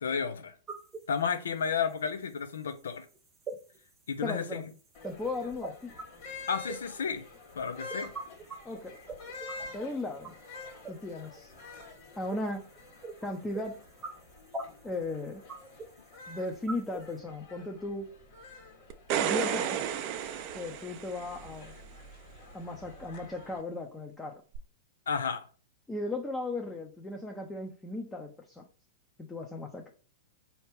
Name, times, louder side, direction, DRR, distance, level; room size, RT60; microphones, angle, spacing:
voice 1, 0.0-0.5 1.1-3.1 4.1-4.7 6.5-7.3 7.5-8.1 25.1-25.4, left 6 dB, 80° left, 0.6 m, -32 dB
sound 1, 0.7-17.2, right 3 dB, 20° right, 0.9 m, -46 dB
voice 2, 4.2-4.7 5.0-5.9 8.6-9.0 9.7-10.3 10.9-11.5 12.2-12.7 13.2-13.8 14.8-15.4 16.3-18.1 19.2-19.9 20.5-21.7 22.5-24.3 25.9-28.6 29.3-29.9, left 2 dB, 10° left, 0.7 m, -36 dB
sound 2, 4.9-23.6, left 3 dB, 60° left, 1.5 m, -49 dB
sound 3, 18.9-21.5 24.5-24.6, right 9 dB, 45° right, 0.5 m, -32 dB
4.3 x 2.9 x 3.4 m
hypercardioid pair, 110°, 0 cm